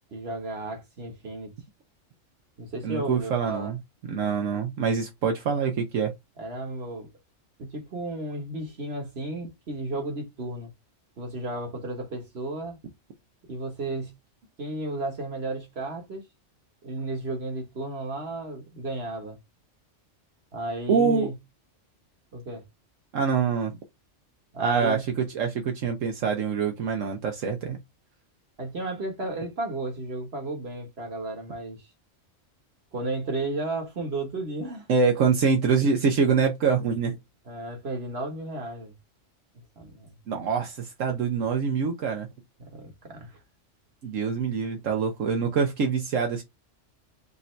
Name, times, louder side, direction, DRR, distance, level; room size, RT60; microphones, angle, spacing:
voice 1, 0.1-1.5 2.6-3.7 6.4-7.1 7.6-10.7 11.2-12.8 13.5-14.1 14.6-16.3 16.8-19.4 20.5-21.3 22.3-22.6 24.5-25.0 28.6-31.8 32.9-34.9 37.5-38.9 39.8-40.2 42.6-43.4, right 2 dB, 55° right, 1.5 m, -33 dB
voice 2, 2.8-3.8 4.1-6.1 20.9-21.3 23.1-23.7 24.6-27.8 34.9-37.2 40.3-42.3 44.0-46.4, right 5 dB, 80° right, 1.2 m, -25 dB
5.3 x 2.7 x 3.2 m
omnidirectional pair, 1.3 m